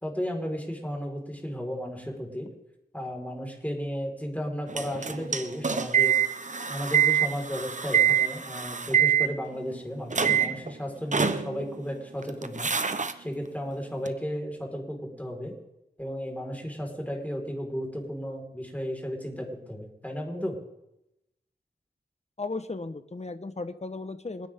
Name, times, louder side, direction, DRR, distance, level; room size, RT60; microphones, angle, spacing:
voice 1, 0.0-2.5 2.9-6.2 6.7-12.7 13.2-15.5 16.0-20.6, equal, 10° left, 1 dB, 5.0 m, -34 dB
sound 1, 4.7-9.8 10.1-10.7 11.1-11.9 12.2-13.1 14.0-14.1, right 8 dB, 45° right, 1.0 m, -25 dB
voice 2, 22.4-24.5, left 3 dB, 40° left, 10 dB, 1.3 m, -35 dB
28.5 x 10.5 x 3.8 m, 0.87 s
cardioid pair, 45°, 17 cm